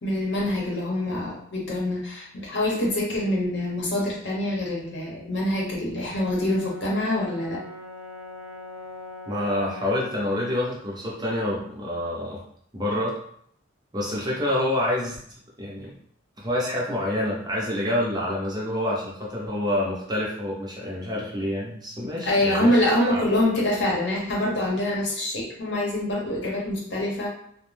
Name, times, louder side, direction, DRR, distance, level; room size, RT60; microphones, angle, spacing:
voice 1, 0.0-7.6 22.2-27.3, left 1 dB, 60° left, -3 dB, 0.8 m, -25 dB
Brass instrument, 5.9-10.2, equal, 85° right, 0.4 m, -41 dB
voice 2, 9.3-12.4 12.7-13.2 13.9-15.2 15.6-15.9 16.4-22.8 23.1-23.2, left 1 dB, 20° right, -4 dB, 0.5 m, -27 dB
2.5 x 2.0 x 3.1 m, 0.66 s
head